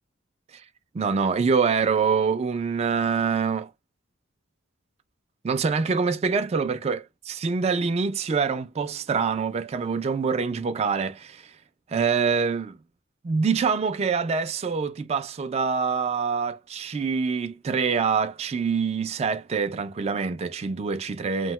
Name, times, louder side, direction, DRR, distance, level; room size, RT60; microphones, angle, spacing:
voice 1, 0.9-3.7 5.4-11.5 11.9-12.8 13.2-21.5, right 5 dB, 30° right, 0.3 m, -25 dB
2.7 x 2.2 x 2.9 m
head